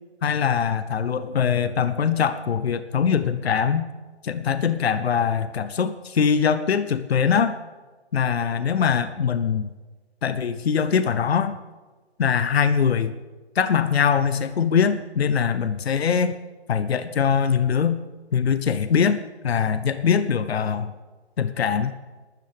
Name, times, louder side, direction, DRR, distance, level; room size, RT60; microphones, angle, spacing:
voice 1, 0.2-3.9 4.2-7.6 8.1-9.7 10.2-11.6 12.2-13.1 13.5-16.3 16.7-18.0 18.3-20.9 21.4-21.9, left 7 dB, 65° left, 12 dB, 0.9 m, -22 dB
22.0 x 12.5 x 3.5 m, 1.3 s
hypercardioid pair, 165°, 33 cm